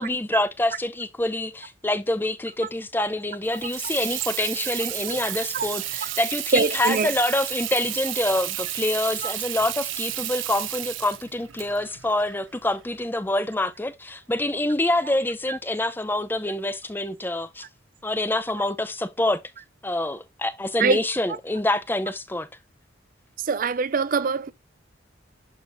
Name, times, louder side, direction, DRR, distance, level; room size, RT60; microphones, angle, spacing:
voice 1, 0.0-17.6 18.0-19.4 19.8-22.5, left 1 dB, 10° left, 0.6 m, -26 dB
Water tap faucet / Sink (filling or washing), 3.4-13.0, right 13 dB, 80° right, 0.8 m, -32 dB
voice 2, 6.5-7.1 9.2-9.3 15.5-15.6 20.8-21.4 23.4-24.5, right 4 dB, 45° right, 0.4 m, -24 dB
11.0 x 3.9 x 2.6 m
head